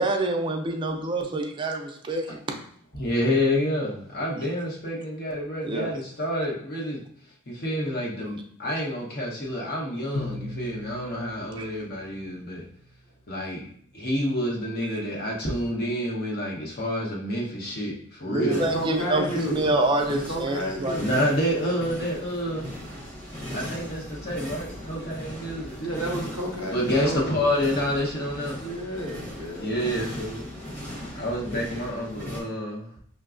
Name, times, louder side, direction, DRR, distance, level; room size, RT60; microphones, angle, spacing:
voice 1, 0.0-2.6 4.3-4.5 5.6-5.9 11.6-11.7 14.9-15.0 18.3-21.3, right 2 dB, 20° right, 2 dB, 0.4 m, -27 dB
voice 2, 2.9-7.0 7.5-12.6 13.3-13.6 13.9-18.6 21.0-22.7 23.5-25.8 26.7-28.6 29.6-30.5 30.9-32.9, equal, 50° left, -2 dB, 0.9 m, -28 dB
Bowed string instrument, 10.1-13.0, left 2 dB, 65° left, 0.4 m, -39 dB
voice 3, 18.3-19.7 20.1-21.2 25.8-27.5 28.6-29.7, right 1 dB, 80° left, -1 dB, 1.0 m, -31 dB
sound 1, 18.5-32.4, equal, 5° left, 0.8 m, -38 dB
5.7 x 2.2 x 2.4 m, 0.63 s
head